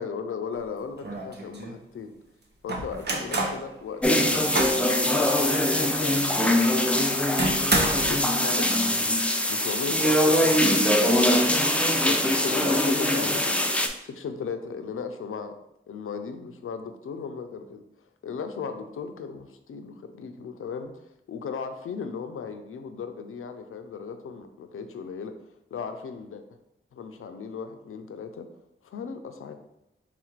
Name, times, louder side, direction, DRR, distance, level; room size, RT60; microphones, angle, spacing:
voice 1, 0.0-2.1 2.6-7.6 8.0-8.7 9.5-10.6 11.0-13.6 14.0-15.5 15.9-17.8 18.2-20.9 21.3-25.4 25.7-26.4 26.9-28.5 28.8-29.5, left 5 dB, 80° left, 8 dB, 0.4 m, -36 dB
sound 1, 0.6-0.7 1.0-1.8 2.7-3.6 4.1-4.9 5.3-5.4 5.9-6.0 7.4-8.2, right 2 dB, 50° right, 0.7 m, -28 dB
sound 2, 4.0-13.9, left 1 dB, 5° left, 0.4 m, -22 dB
3.6 x 2.4 x 4.5 m, 0.84 s
wide cardioid pair, 95°, 21 cm